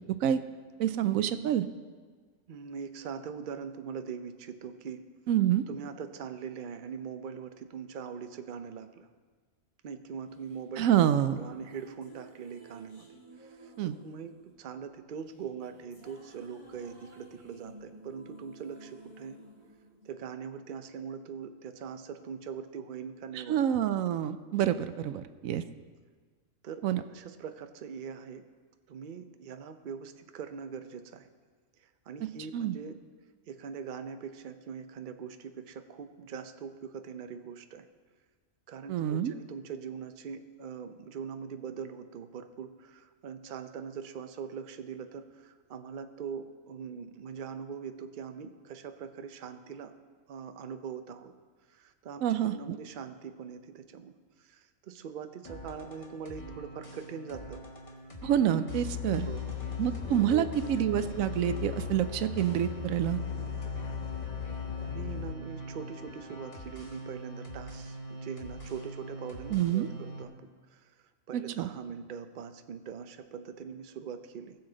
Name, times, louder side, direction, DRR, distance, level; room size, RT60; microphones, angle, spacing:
voice 1, 0.8-1.7 5.3-5.6 10.8-11.4 13.8-14.0 23.5-25.6 26.8-27.0 32.5-32.8 38.9-39.3 52.2-52.8 58.2-59.3 59.8-63.2 69.5-69.9 71.3-71.7, right 10 dB, 90° right, 12 dB, 1.0 m, -27 dB
voice 2, 2.5-5.1 5.7-9.1 9.8-11.0 11.3-13.1 13.4-19.4 20.0-23.7 26.6-26.8 27.1-28.5 28.9-31.3 31.8-33.0 33.5-37.9 38.7-49.9 50.3-51.3 51.7-57.6 59.2-59.6 60.3-60.8 64.8-70.9 71.3-74.6, right 6 dB, 50° right, 8 dB, 0.7 m, -42 dB
sound 1, 10.4-20.8, right 2 dB, 70° left, 3.5 m, -54 dB
sound 2, 55.4-70.2, right 2 dB, 25° left, 1.4 m, -43 dB
sound 3, 58.7-65.3, left 11 dB, 45° left, 0.6 m, -38 dB
19.0 x 7.1 x 3.9 m, 1.5 s
omnidirectional pair, 1.4 m